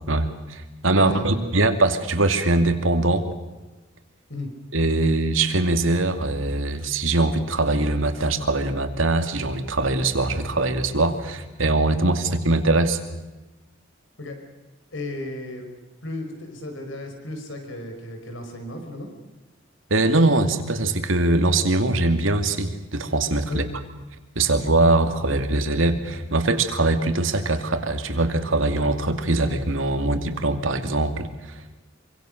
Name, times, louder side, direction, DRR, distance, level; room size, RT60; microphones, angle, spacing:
voice 1, 0.1-3.2 4.7-13.0 19.9-23.6 24.4-31.3, right 2 dB, 80° right, 6 dB, 2.5 m, -22 dB
voice 2, 1.0-1.6 4.3-4.5 14.2-14.4 14.9-15.7 16.0-19.1 23.5-23.7, left 1 dB, 70° left, 5 dB, 5.0 m, -34 dB
26.5 x 25.0 x 6.6 m, 1.1 s
head